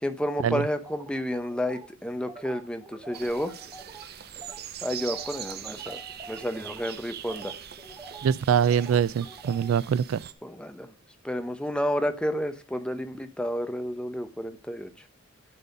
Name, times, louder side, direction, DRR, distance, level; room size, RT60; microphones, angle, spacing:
voice 1, 0.0-3.5 4.8-6.0 6.3-7.6 10.4-10.9 11.2-14.9, equal, 5° left, 0.7 m, -30 dB
sound 1, 0.8-4.0 4.4-4.6 4.9-9.7, right 2 dB, 20° right, 1.9 m, -46 dB
sound 2, 3.1-10.3, right 9 dB, 50° right, 0.7 m, -41 dB
voice 2, 8.2-10.2, right 8 dB, 80° right, 0.3 m, -24 dB
10.5 x 4.1 x 5.3 m
head